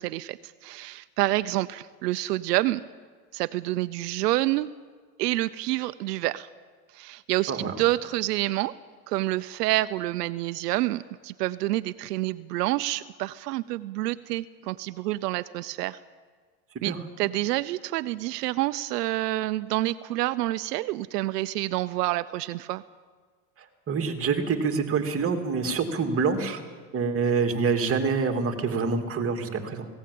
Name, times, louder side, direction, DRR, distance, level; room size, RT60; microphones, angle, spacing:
voice 1, 0.0-2.8 3.3-4.7 5.2-6.5 6.9-8.8 9.1-16.0 16.8-22.8, right 17 dB, 85° right, 14 dB, 0.7 m, -28 dB
voice 2, 23.6-26.6 26.9-29.9, right 5 dB, 30° right, 5 dB, 2.7 m, -26 dB
18.5 x 17.0 x 8.6 m, 1.5 s
supercardioid pair, 115°, 47 cm